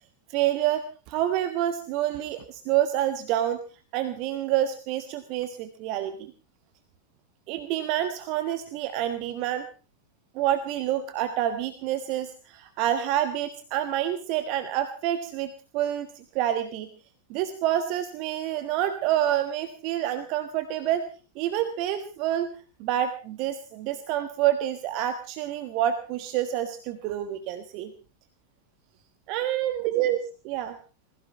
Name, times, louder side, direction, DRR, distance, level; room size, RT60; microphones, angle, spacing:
voice 1, 0.3-3.6 3.9-6.1 7.5-9.7 10.3-16.9 17.3-21.0 21.3-22.5 22.8-27.9 29.3-30.2 30.4-30.7, right 12 dB, 45° right, 10 dB, 1.3 m, -27 dB
21.0 x 15.5 x 4.3 m, 0.36 s
figure-of-eight pair, 90°, 0 cm